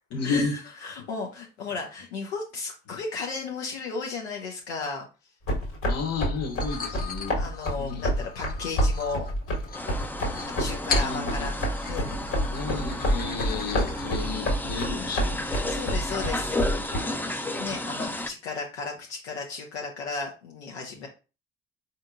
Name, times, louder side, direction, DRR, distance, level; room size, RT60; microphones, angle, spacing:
voice 1, 0.1-0.5 1.0-1.1 5.9-7.4 7.8-8.2 10.9-11.5 12.5-15.7 16.5-17.8, left 4 dB, 50° left, 1.1 m, -33 dB
voice 2, 0.8-5.1 7.4-9.3 10.6-11.5 11.9-12.2 15.7-16.6 17.6-21.1, left 4 dB, 85° left, 0.6 m, -34 dB
sound 1, 5.5-17.0, equal, 65° left, 1.7 m, -28 dB
sound 2, 6.4-14.2, left 5 dB, 30° left, 0.8 m, -38 dB
sound 3, 9.7-18.3, left 1 dB, 5° left, 0.4 m, -33 dB
4.2 x 2.8 x 2.5 m
hypercardioid pair, 45°, 32 cm